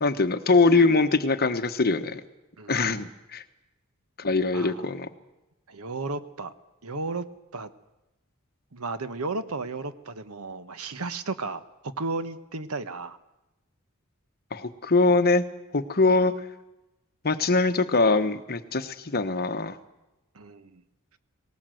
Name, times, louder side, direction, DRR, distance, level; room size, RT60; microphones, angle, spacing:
voice 1, 0.0-2.2 2.7-3.4 4.2-5.1 14.5-15.4 15.7-16.3 17.2-19.8, left 3 dB, 45° left, 9 dB, 1.2 m, -22 dB
voice 2, 2.6-3.0 4.5-4.9 5.7-6.5 6.8-7.3 7.5-7.7 8.7-13.2 20.3-20.8, right 3 dB, 75° right, 12 dB, 1.1 m, -34 dB
19.5 x 18.0 x 7.8 m, 0.99 s
head